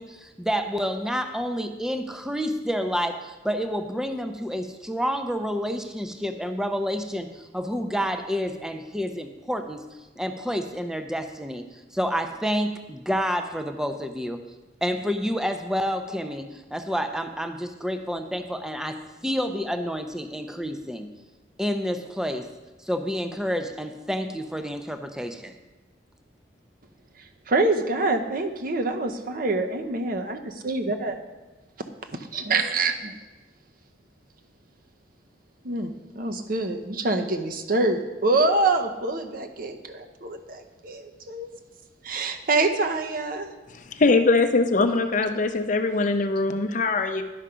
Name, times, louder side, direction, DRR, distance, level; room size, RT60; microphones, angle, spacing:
voice 1, 0.0-9.8 10.2-11.7 11.9-14.4 14.8-21.1 21.6-22.5 22.8-25.6, equal, 5° right, 7 dB, 0.5 m, -29 dB
voice 2, 27.5-31.2 32.3-33.1 35.6-41.5 42.0-43.5, right 3 dB, 55° right, 6 dB, 0.8 m, -26 dB
voice 3, 43.9-47.2, left 3 dB, 45° left, 8 dB, 0.6 m, -22 dB
11.0 x 5.7 x 5.0 m, 1.2 s
head